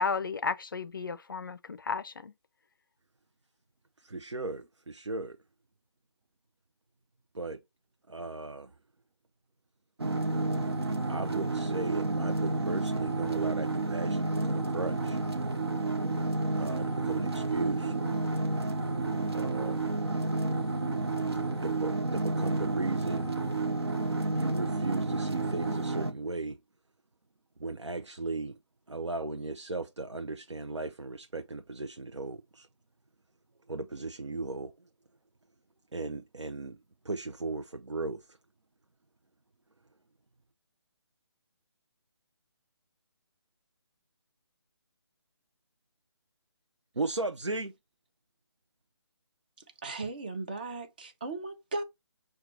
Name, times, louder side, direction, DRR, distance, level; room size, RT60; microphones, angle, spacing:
voice 1, 0.0-2.3, left 5 dB, 50° left, 0.4 m, -33 dB
voice 2, 4.0-5.4 7.3-7.6 8.1-8.7 10.6-10.7 11.1-15.2 16.5-17.9 19.3-19.9 21.6-23.4 24.3-26.6 27.6-28.6 28.9-32.7 33.7-34.7 35.9-36.8 37.0-38.4 46.9-47.7, right 3 dB, 85° right, 0.4 m, -36 dB
sound 1, 10.0-26.1, right 2 dB, 60° right, 0.8 m, -30 dB
voice 3, 49.8-51.8, right 3 dB, 20° right, 0.4 m, -36 dB
6.5 x 2.2 x 2.8 m
figure-of-eight pair, 150°, 15 cm